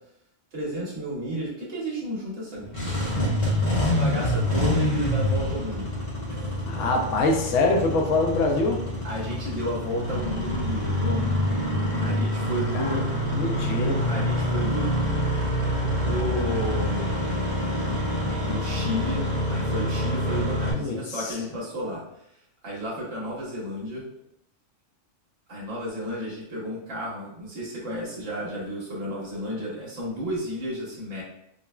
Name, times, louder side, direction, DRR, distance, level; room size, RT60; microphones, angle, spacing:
voice 1, 0.5-3.1 3.5-5.9 6.3-6.6 9.0-11.2 12.0-13.0 14.0-15.3 16.0-17.2 18.4-22.0 22.6-24.0 25.5-31.2, equal, 75° right, -6 dB, 1.3 m, -32 dB
Engine starting, 2.6-20.7, left 1 dB, 45° left, 0.6 m, -26 dB
voice 2, 6.6-8.8 12.7-13.0 13.3-14.0 20.7-21.4, left 2 dB, 75° left, 2 dB, 0.9 m, -24 dB
3.7 x 2.1 x 2.2 m, 0.78 s
omnidirectional pair, 1.3 m